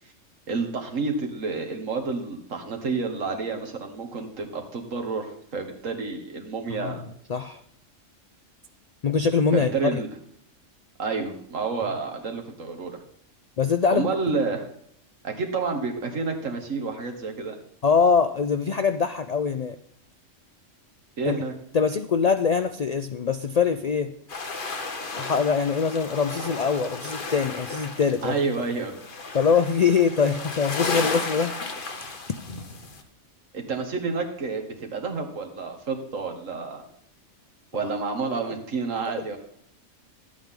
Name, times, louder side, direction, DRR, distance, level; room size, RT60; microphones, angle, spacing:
voice 1, 0.5-7.0 9.5-10.1 11.0-13.0 13.9-14.6 15.2-17.6 21.2-21.5 28.2-28.9 33.5-36.8 37.7-39.4, right 4 dB, 85° right, 3 dB, 1.9 m, -29 dB
voice 2, 6.7-7.0 7.3-7.6 9.0-10.0 13.6-14.1 17.8-19.8 21.3-21.4 21.7-24.1 25.2-28.4 29.3-31.6, left 6 dB, 65° left, 9 dB, 0.4 m, -23 dB
sound 1, 24.3-33.0, left 3 dB, 45° left, 1.3 m, -34 dB
12.0 x 8.5 x 3.7 m, 0.71 s
omnidirectional pair, 1.3 m